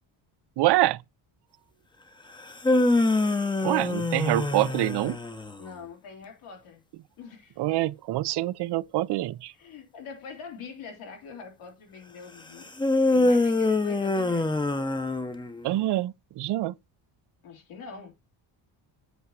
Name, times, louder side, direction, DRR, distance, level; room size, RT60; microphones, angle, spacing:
voice 1, 0.6-1.0 3.6-5.2 7.6-9.5 15.6-16.7, right 16 dB, 55° right, 0.5 m, -25 dB
sound 1, 2.4-5.6 12.8-15.7, left 2 dB, 10° left, 0.7 m, -24 dB
voice 2, 5.6-6.8 7.2-7.6 9.5-12.7 13.1-14.5 17.4-18.1, left 5 dB, 85° left, 3.1 m, -43 dB
8.2 x 2.9 x 6.2 m
cardioid pair, 100°, 49 cm